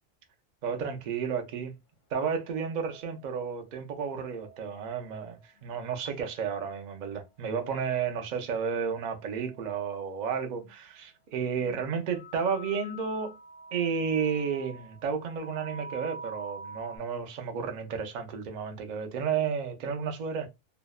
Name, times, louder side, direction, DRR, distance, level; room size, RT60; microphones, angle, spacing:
voice 1, 0.6-1.7 2.1-13.4 13.7-20.5, right 6 dB, 55° right, 0.5 m, -32 dB
sound 1, 2.3-3.5 4.1-5.7 6.2-7.3 8.3-10.0 10.6-10.7 11.6-11.8 12.1-17.0, right 1 dB, 55° left, 0.6 m, -47 dB
2.6 x 2.0 x 2.2 m
omnidirectional pair, 1.2 m